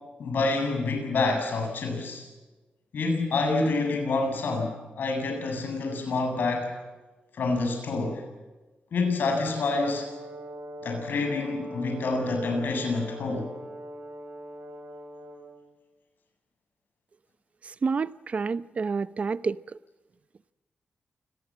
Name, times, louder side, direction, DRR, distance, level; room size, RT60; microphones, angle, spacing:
voice 1, 0.2-2.2 2.9-6.7 7.4-8.2 8.9-10.1 10.8-13.5, left 3 dB, 70° left, 7.8 m, -27 dB
Brass instrument, 9.7-15.7, equal, 85° right, 5.2 m, -41 dB
voice 2, 17.6-19.6, right 5 dB, 40° right, 0.8 m, -29 dB
29.0 x 21.5 x 7.6 m
wide cardioid pair, 140°, 3 cm